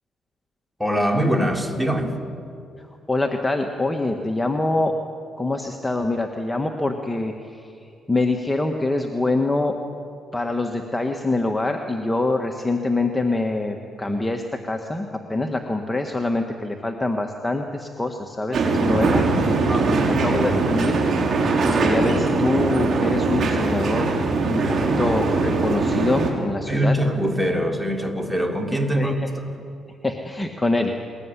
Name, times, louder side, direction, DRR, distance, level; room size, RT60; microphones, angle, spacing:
voice 1, 0.8-2.1 19.7-20.1 26.7-29.1, equal, 5° right, 2 dB, 3.5 m, -23 dB
voice 2, 3.1-4.9 5.4-9.7 10.3-19.2 20.1-21.0 21.4-24.1 24.5-27.0 28.9-29.3 30.0-30.9, left 2 dB, 10° left, 3 dB, 1.7 m, -25 dB
sound 1, 18.5-26.3, right 3 dB, 55° right, 4.8 m, -21 dB
21.5 x 21.0 x 10.0 m, 2.6 s
cardioid pair, 90°, 0 cm